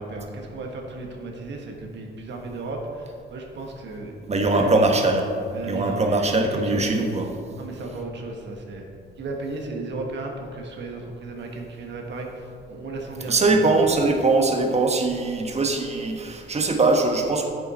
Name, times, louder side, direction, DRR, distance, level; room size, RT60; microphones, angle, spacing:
voice 1, 0.0-4.8 5.5-7.1 7.6-8.8 9.2-12.3 12.7-13.9, right 3 dB, 65° right, 1 dB, 1.4 m, -34 dB
voice 2, 4.3-5.3 5.7-7.3 13.3-17.5, right 3 dB, 35° right, 3 dB, 1.2 m, -21 dB
9.7 x 7.0 x 4.2 m, 2.3 s
cardioid pair, 90°, 20 cm